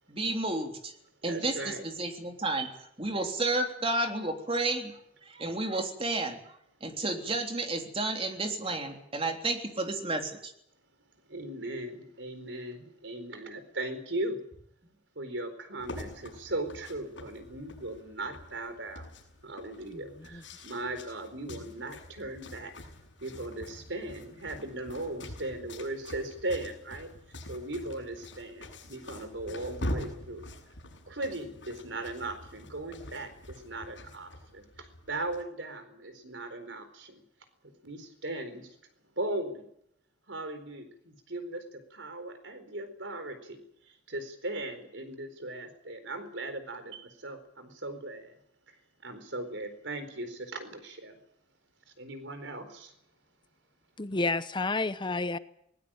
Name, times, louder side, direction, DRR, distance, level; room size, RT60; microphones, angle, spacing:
voice 1, 0.1-0.9 1.2-2.7 3.0-4.9 5.3-6.4 6.8-10.5, right 2 dB, 30° right, 3.4 m, -31 dB
voice 2, 1.2-1.9 2.6-2.7 11.3-14.4 15.2-19.1 19.4-22.7 23.2-27.1 27.5-30.4 31.1-37.2 37.6-38.8 39.2-39.7 40.3-48.4 48.7-48.8 49.0-51.2 52.0-52.9, right 2 dB, 90° right, 4.4 m, -38 dB
sound 1, 15.8-35.4, left 1 dB, 80° left, 7.2 m, -44 dB
voice 3, 54.0-55.4, left 3 dB, 25° left, 0.8 m, -30 dB
20.0 x 19.5 x 9.0 m
head